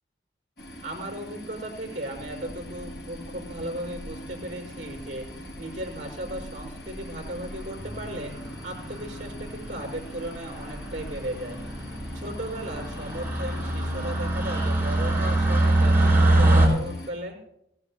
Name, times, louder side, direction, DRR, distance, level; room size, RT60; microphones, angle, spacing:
sound 1, 0.6-17.1, equal, 65° left, 5.8 m, -43 dB
voice 1, 0.8-8.3 8.6-11.6 12.1-17.4, right 1 dB, 45° right, 0 dB, 5.0 m, -36 dB
sound 2, 2.5-3.0 3.9-4.4 5.2-5.3 5.5-5.6 5.9-6.0 6.3-6.6 7.0-7.3 7.5-16.7, right 1 dB, 10° right, 5.7 m, -25 dB
21.0 x 17.5 x 2.3 m, 0.79 s
head